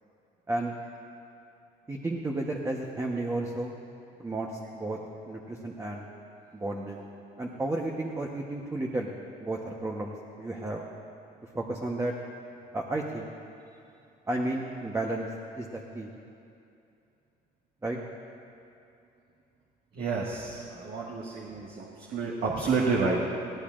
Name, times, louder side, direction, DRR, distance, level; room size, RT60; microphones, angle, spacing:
voice 1, 1.9-3.7 4.2-5.0 5.3-6.0 6.5-7.0 7.4-9.1 9.4-10.9 11.5-12.1 12.7-13.3 14.3-15.3 15.6-16.1 17.8-18.0, right 2 dB, 15° right, -1 dB, 1.0 m, -32 dB
voice 2, 19.9-23.4, right 4 dB, 65° right, -4 dB, 1.8 m, -30 dB
20.5 x 16.5 x 2.5 m, 2.7 s
cardioid pair, 110°, 17 cm